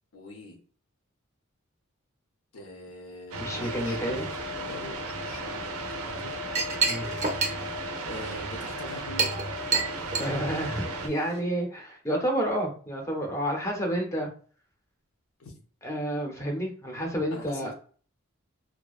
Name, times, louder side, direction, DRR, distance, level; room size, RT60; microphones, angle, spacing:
voice 1, 0.1-0.6 2.5-6.3 8.0-9.4 15.4-15.5 17.3-17.7, left 1 dB, 75° left, 4 dB, 0.6 m, -43 dB
sound 1, 3.3-11.1, right 1 dB, 85° right, 0.5 m, -35 dB
voice 2, 3.4-4.3 6.9-7.1 10.2-14.3 15.8-17.7, equal, 15° left, 0 dB, 0.6 m, -30 dB
Chink clink, 6.1-11.4, right 4 dB, 35° right, 0.5 m, -31 dB
2.6 x 2.1 x 2.3 m, 0.42 s
head